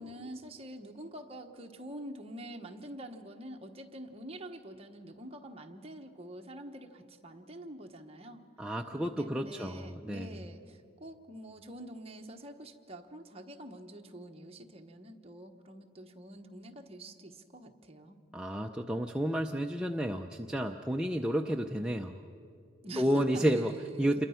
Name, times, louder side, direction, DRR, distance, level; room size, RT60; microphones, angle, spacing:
voice 1, 0.0-8.4 8.9-18.2 22.8-24.3, right 1 dB, 30° right, 3 dB, 1.2 m, -46 dB
voice 2, 8.6-10.4 18.3-22.1 23.0-23.7 24.0-24.2, equal, 5° right, 1 dB, 0.5 m, -31 dB
27.5 x 22.0 x 5.7 m, 2.6 s
head